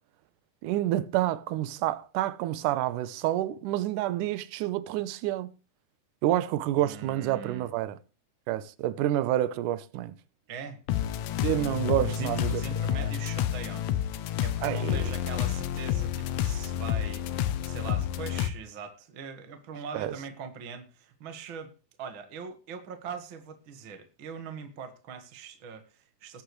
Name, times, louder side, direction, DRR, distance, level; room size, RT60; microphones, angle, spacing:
voice 1, 0.6-5.5 6.2-8.0 8.5-10.1 11.4-12.6 12.9-13.1 14.6-15.1 19.9-20.1, right 13 dB, 70° right, 2.0 m, -28 dB
voice 2, 6.8-7.7 10.5-10.8 11.6-13.9 14.4-21.7 22.0-26.4, right 6 dB, 50° right, 1.7 m, -41 dB
sound 1, 10.9-18.5, left 11 dB, 75° left, 1.7 m, -29 dB
20.0 x 8.7 x 3.2 m
omnidirectional pair, 4.3 m